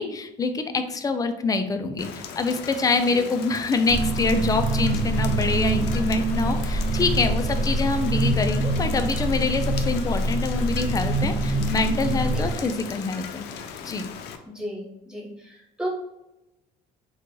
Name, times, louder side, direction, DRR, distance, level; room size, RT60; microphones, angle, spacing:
voice 1, 0.0-13.5 13.8-14.1, left 4 dB, 20° left, 8 dB, 0.4 m, -25 dB
Rain, 2.0-14.4, left 7 dB, 85° left, 0.4 m, -38 dB
voice 2, 2.9-3.2 12.3-12.9 14.5-15.9, equal, 5° right, -4 dB, 1.1 m, -36 dB
sound 1, 3.9-12.5, right 2 dB, 40° right, 0.4 m, -25 dB
3.8 x 2.3 x 3.1 m, 0.93 s
cardioid pair, 110°, 17 cm